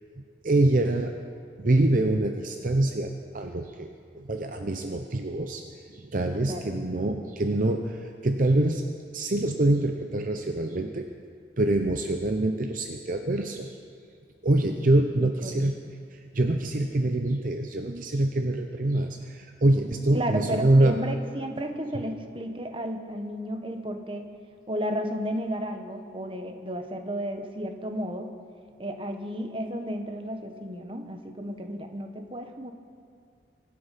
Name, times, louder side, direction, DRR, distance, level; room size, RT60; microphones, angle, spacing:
voice 1, 0.4-1.1 1.6-3.9 4.1-5.6 5.9-8.8 9.1-11.0 11.6-13.8 14.4-15.7 16.1-21.0, right 2 dB, 50° right, 5 dB, 0.7 m, -25 dB
voice 2, 6.4-6.8 15.4-15.7 20.1-24.3 24.7-28.3 28.8-32.7, equal, 30° right, 6 dB, 1.1 m, -33 dB
24.0 x 8.7 x 5.8 m, 2.4 s
head